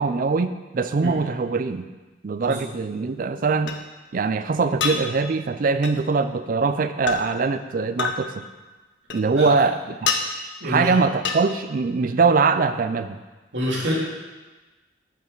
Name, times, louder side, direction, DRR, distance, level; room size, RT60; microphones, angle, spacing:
voice 1, 0.0-1.9 2.2-3.8 4.1-8.5 9.1-10.1 10.6-13.2, right 4 dB, 50° right, 11 dB, 0.4 m, -22 dB
sound 1, 2.4-2.5 3.7-3.8 4.8-5.0 5.8-6.0 7.1-7.2 8.0-8.2 9.1-9.6 10.1-10.2 11.2-11.4, left 6 dB, 80° left, 0.7 m, -25 dB
voice 2, 13.5-13.9, equal, 75° right, -5 dB, 2.5 m, -26 dB
8.1 x 7.4 x 3.9 m, 1.2 s
head